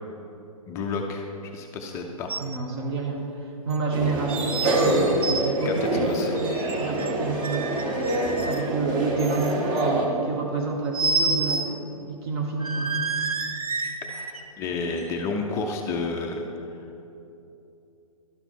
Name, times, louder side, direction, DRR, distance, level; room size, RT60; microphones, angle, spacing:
voice 1, 0.7-1.3 1.5-2.3 5.7-6.4 13.8-16.5, left 3 dB, 15° left, 2 dB, 0.4 m, -31 dB
sound 1, 2.3-2.6 2.9-3.0 3.7-3.8 4.5-4.8 5.1-5.5 6.6-7.1 7.4-8.7 9.2-9.8 10.9-11.7 12.0-12.1 12.6-14.4 15.0-15.1, right 3 dB, 80° right, 0.7 m, -29 dB
voice 2, 2.4-6.1 6.4-7.8 8.2-12.9, right 3 dB, 45° right, 1 dB, 1.1 m, -29 dB
sound 2, 3.9-10.1, right 1 dB, 25° right, 0.9 m, -26 dB
11.5 x 4.0 x 4.5 m, 2.8 s
hypercardioid pair, 130°, 19 cm